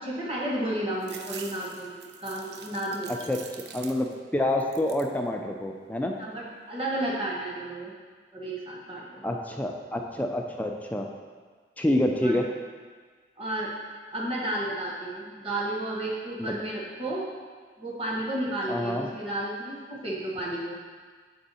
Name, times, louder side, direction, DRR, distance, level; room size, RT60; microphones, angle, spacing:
voice 1, 0.0-3.1 6.2-7.9 8.3-9.2 12.2-12.4 13.4-13.7 14.1-17.3 17.8-20.8, right 1 dB, 30° right, -5 dB, 1.2 m, -32 dB
sound 1, 1.0-4.3 4.6-5.2 5.7-6.4, right 7 dB, 65° right, 0.4 m, -45 dB
voice 2, 3.1-6.2 9.2-11.1 11.8-12.4 16.4-16.6 18.7-19.1, left 1 dB, 10° left, 2 dB, 0.4 m, -28 dB
7.8 x 3.5 x 4.1 m, 1.5 s
head